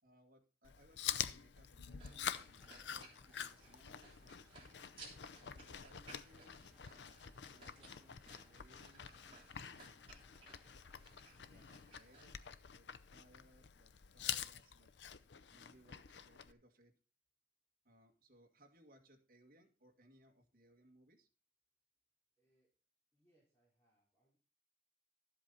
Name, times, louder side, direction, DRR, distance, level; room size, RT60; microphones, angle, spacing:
voice 1, 0.0-4.8 5.4-9.1 9.7-10.2 11.5-14.9 15.5-16.9 17.8-21.3, equal, 55° right, 2 dB, 2.1 m, -67 dB
Chewing mastication, 0.6-16.5, left 9 dB, 85° left, 0.6 m, -47 dB
sound 1, 1.6-12.4, right 1 dB, 5° right, 1.2 m, -73 dB
sound 2, 2.0-12.4, right 3 dB, 30° right, 3.5 m, -61 dB
voice 2, 22.4-22.7 23.1-24.4, right 1 dB, 10° left, -7 dB, 3.9 m, -78 dB
12.5 x 8.0 x 4.1 m, 0.35 s
head